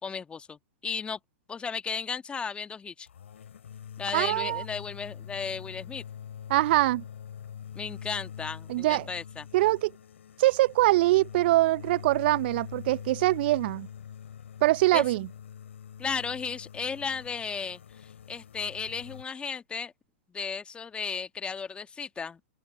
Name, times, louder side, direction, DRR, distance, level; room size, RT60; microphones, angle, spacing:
voice 1, 0.0-1.2 1.5-3.1 4.0-6.0 7.7-9.4 14.9-15.0 16.0-19.9 20.3-22.4, left 5 dB, 15° left, 1.6 m, -35 dB
sound 1, 3.1-19.2, left 8 dB, 70° left, 2.7 m, -44 dB
voice 2, 4.1-4.6 6.5-7.0 8.7-9.1 9.5-9.9 10.4-13.9 14.6-15.3, right 17 dB, 50° right, 0.6 m, -23 dB
open air
figure-of-eight pair, 105°, 7 cm